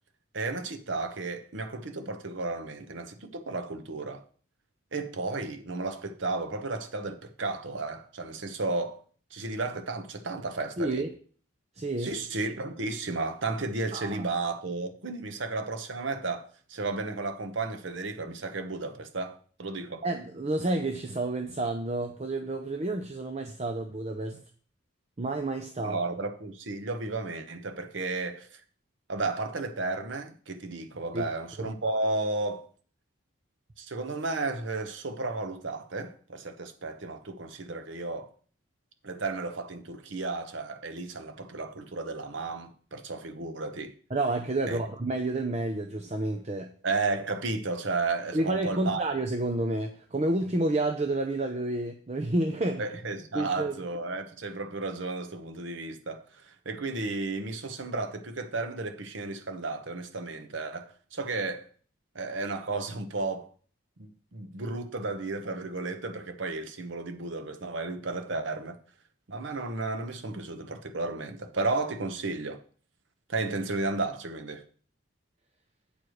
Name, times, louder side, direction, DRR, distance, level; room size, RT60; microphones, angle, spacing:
voice 1, 0.3-4.2 4.9-9.0 9.3-11.0 12.0-20.0 25.8-28.6 29.1-32.7 33.8-38.3 39.0-43.9 44.7-44.8 46.8-49.1 52.8-61.6 62.1-63.5 64.0-68.8 69.3-72.6 73.3-74.6, right 3 dB, 60° right, 0.9 m, -33 dB
voice 2, 10.8-11.2 11.7-12.1 13.9-14.2 20.0-24.4 25.2-26.0 31.1-31.3 31.6-31.7 44.1-46.7 48.3-52.9 53.3-53.9, right 2 dB, 30° right, 0.6 m, -30 dB
8.4 x 4.7 x 6.3 m
head